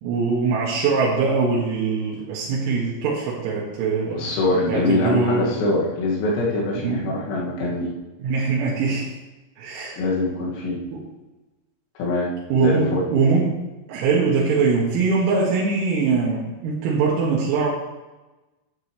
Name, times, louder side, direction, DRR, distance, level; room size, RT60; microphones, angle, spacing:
voice 1, 0.0-4.3 4.7-5.6 6.8-7.4 8.2-9.1 9.6-10.0 10.9-11.0 12.5-13.6 13.9-17.7, right 4 dB, 85° right, -6 dB, 4.4 m, -22 dB
voice 2, 4.1-7.9 9.9-10.8 12.0-12.3 12.6-13.1, left 2 dB, 80° left, -4 dB, 4.8 m, -23 dB
13.0 x 8.6 x 3.3 m, 1.1 s
omnidirectional pair, 6.0 m